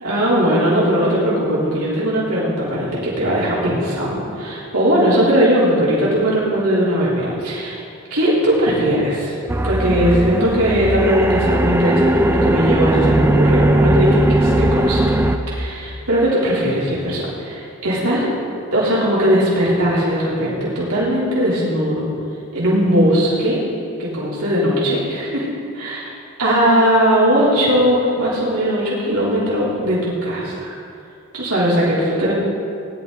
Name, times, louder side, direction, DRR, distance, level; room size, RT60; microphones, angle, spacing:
voice 1, 0.0-7.8 8.1-9.4 9.6-15.2 15.5-18.3 18.7-22.0 22.5-23.6 24.0-25.5 25.7-26.1 26.4-30.7 31.3-32.3, equal, 85° right, -7 dB, 3.5 m, -19 dB
sound 1, 9.5-15.4, right 1 dB, 10° right, 0.5 m, -17 dB
18.5 x 11.0 x 3.9 m, 2.5 s
head